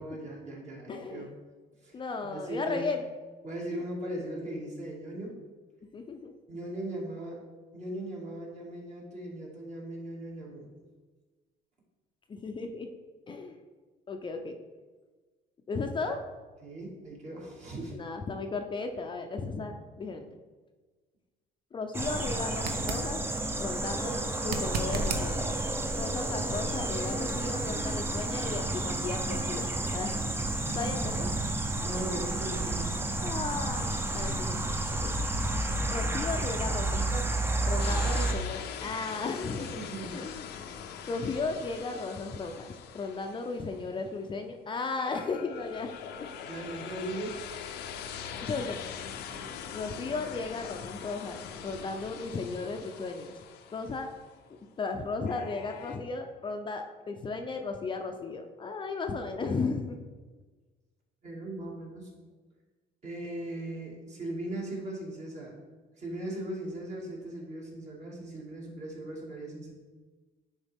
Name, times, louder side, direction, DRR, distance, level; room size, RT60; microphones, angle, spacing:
voice 1, 0.0-1.3 1.8-2.9 3.4-5.4 6.5-7.4 7.7-10.7 16.6-18.0 31.7-33.0 39.6-40.2 46.5-47.4 49.3-49.5 51.6-51.7 61.2-62.1 63.0-65.5 66.0-69.7, right 1 dB, 45° right, -3 dB, 2.2 m, -38 dB
voice 2, 0.9-1.3 1.9-3.1 5.9-6.3 12.3-12.9 13.3-13.6 14.1-14.6 15.7-16.2 17.9-20.3 21.7-23.2 23.6-25.5 25.9-30.2 30.7-31.3 33.2-35.1 35.9-40.7 41.1-46.3 46.7-46.8 48.4-48.8 49.7-53.3 53.7-54.1 54.8-60.0, left 4 dB, 30° left, 4 dB, 0.5 m, -35 dB
sound 1, 21.9-38.3, right 2 dB, 15° right, 0.6 m, -31 dB
sound 2, 22.5-23.1 24.4-25.3 28.3-28.4, right 4 dB, 60° right, 0.8 m, -34 dB
sound 3, 37.8-44.2 45.0-54.3 55.2-56.0, left 8 dB, 80° left, 0.6 m, -42 dB
9.6 x 4.0 x 3.5 m, 1.3 s
cardioid pair, 110°, 17 cm